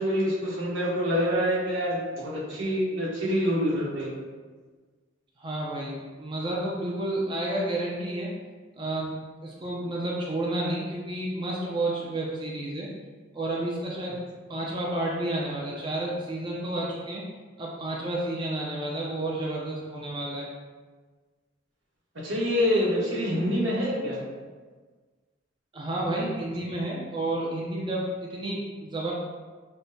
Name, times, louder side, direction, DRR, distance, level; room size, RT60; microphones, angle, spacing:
voice 1, 0.0-4.1 22.2-24.2, equal, 85° right, -6 dB, 1.2 m, -26 dB
voice 2, 5.4-8.3 8.8-12.9 13.3-14.2 14.5-17.2 17.6-20.5 25.7-29.1, right 1 dB, 25° right, -3 dB, 0.4 m, -31 dB
6.1 x 2.1 x 2.7 m, 1.4 s
head